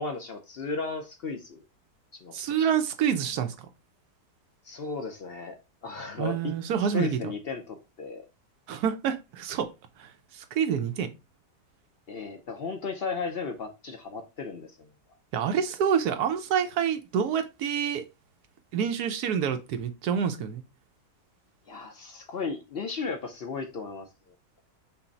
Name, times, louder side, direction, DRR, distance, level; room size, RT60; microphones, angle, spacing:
voice 1, 0.0-1.6 2.1-2.7 4.6-6.5 6.8-8.2 12.1-14.9 21.7-24.3, left 4 dB, 65° left, 0.6 m, -35 dB
voice 2, 2.3-3.7 6.2-7.3 8.7-9.7 10.0-11.1 15.3-18.0 18.7-20.6, right 8 dB, 75° right, 1.1 m, -27 dB
5.7 x 2.0 x 3.9 m
omnidirectional pair, 1.7 m